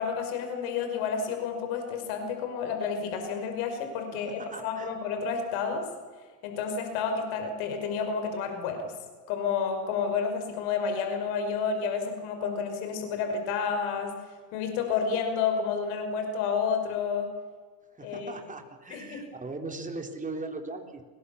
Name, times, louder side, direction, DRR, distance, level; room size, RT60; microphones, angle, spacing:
voice 1, 0.0-5.8 6.4-8.9 9.3-14.1 14.5-17.3 18.0-18.3 18.9-19.3, left 6 dB, 75° left, 5 dB, 5.6 m, -30 dB
voice 2, 4.2-5.0 18.0-21.0, right 3 dB, 15° right, 4 dB, 3.7 m, -39 dB
29.5 x 21.5 x 7.2 m, 1.5 s
supercardioid pair, 110°, 50 cm